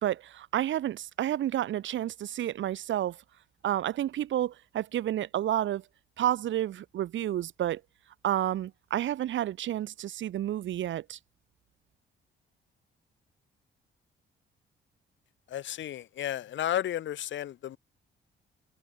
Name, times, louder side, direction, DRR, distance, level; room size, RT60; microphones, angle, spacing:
voice 1, 0.0-3.2 3.6-5.8 6.2-7.8 8.2-11.2, right 12 dB, 70° right, 1.8 m, -30 dB
voice 2, 15.5-17.8, left 11 dB, 70° left, 2.3 m, -33 dB
cardioid pair, 90°, 20 cm